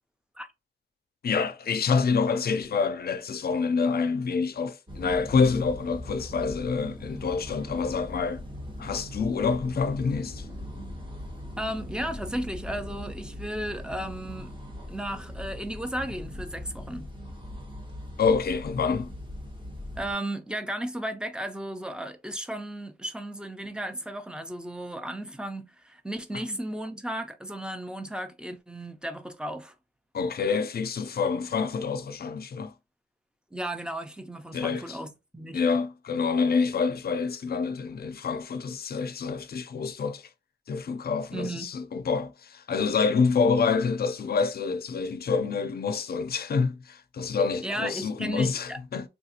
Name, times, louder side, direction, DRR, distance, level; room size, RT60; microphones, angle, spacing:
voice 1, 1.2-8.4 8.8-10.5 18.2-19.1 30.1-32.7 34.5-35.0 35.5-40.3 40.7-49.1, left 5 dB, 55° left, 0.4 m, -27 dB
sound 1, 4.9-20.1, left 1 dB, 25° right, 0.9 m, -40 dB
voice 2, 11.6-14.5 14.9-17.1 20.0-29.7 33.5-35.6 41.3-41.7 47.6-48.8, right 1 dB, 5° right, 0.4 m, -34 dB
3.4 x 2.4 x 2.7 m
wide cardioid pair, 150°, 19 cm